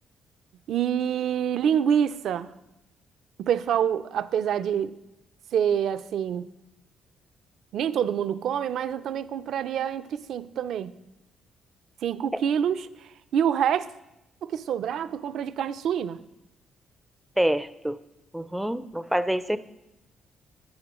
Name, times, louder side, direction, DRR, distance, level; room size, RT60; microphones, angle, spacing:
voice 1, 0.7-2.5 3.4-5.0 5.5-6.5 7.7-10.9 12.0-13.9 14.4-16.2, right 8 dB, 75° right, 0.4 m, -26 dB
voice 2, 17.4-18.0 18.3-19.6, right 1 dB, 5° right, 0.4 m, -26 dB
10.5 x 9.4 x 3.0 m
cardioid pair, 90°, 0 cm